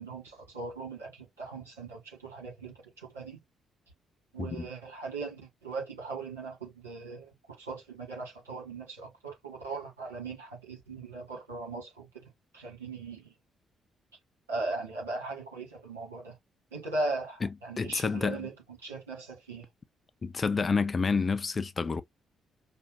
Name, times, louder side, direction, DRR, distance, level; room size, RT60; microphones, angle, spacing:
voice 1, 0.0-3.4 4.3-13.3 14.5-16.4 16.7-18.5 18.8-19.7, right 3 dB, 80° right, 1.7 m, -39 dB
voice 2, 17.8-18.5 20.2-22.0, left 4 dB, 35° left, 0.5 m, -29 dB
5.3 x 2.3 x 2.4 m
figure-of-eight pair, 40°, 0 cm